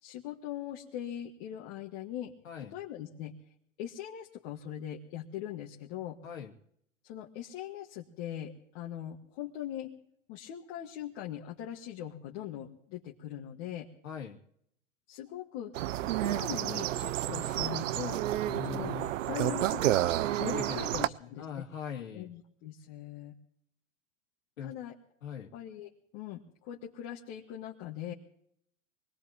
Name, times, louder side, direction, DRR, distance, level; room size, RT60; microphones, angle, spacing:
voice 1, 0.0-2.3 2.7-3.3 3.8-6.2 7.0-9.9 10.3-13.9 15.1-15.7 16.1-18.2 18.6-18.9 19.2-19.9 20.4-21.6 22.1-23.4 24.6-24.9 25.5-28.1, left 11 dB, 50° left, -1 dB, 1.8 m, -41 dB
voice 2, 14.0-14.4 18.5-19.6 20.6-22.3 24.6-24.7 25.2-25.5, left 8 dB, 80° left, 1 dB, 2.5 m, -42 dB
sound 1, 15.7-21.1, right 13 dB, 75° right, 0.6 m, -30 dB
24.0 x 19.5 x 3.0 m, 0.70 s
hypercardioid pair, 105°, 39 cm